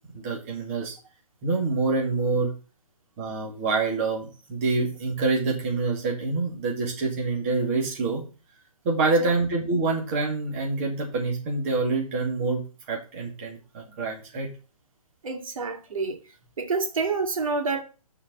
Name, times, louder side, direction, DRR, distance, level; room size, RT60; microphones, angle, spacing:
voice 1, 0.1-1.0 1.4-2.5 3.2-8.2 8.8-12.6 12.9-14.5, right 3 dB, 25° right, 2.2 m, -26 dB
voice 2, 15.2-16.2 16.6-17.8, right 4 dB, 65° right, 2.4 m, -28 dB
8.8 x 4.9 x 6.7 m
hypercardioid pair, 175°, 19 cm